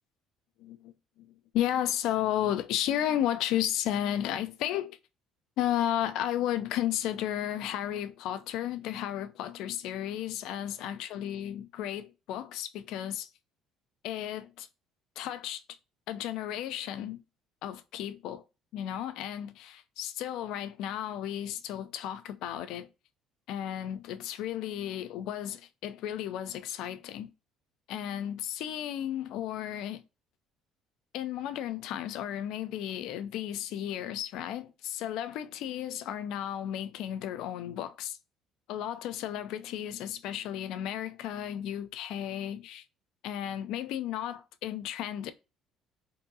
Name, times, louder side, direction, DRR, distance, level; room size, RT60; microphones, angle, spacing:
voice 1, 0.6-5.0 5.6-13.3 14.0-14.7 15.2-15.6 16.1-17.2 17.6-18.4 18.7-22.9 23.5-27.3 27.9-30.0 31.1-38.2 38.7-42.8 43.2-45.3, left 11 dB, 75° left, 0.4 m, -33 dB
3.6 x 2.7 x 2.7 m
cardioid pair, 105°, 0 cm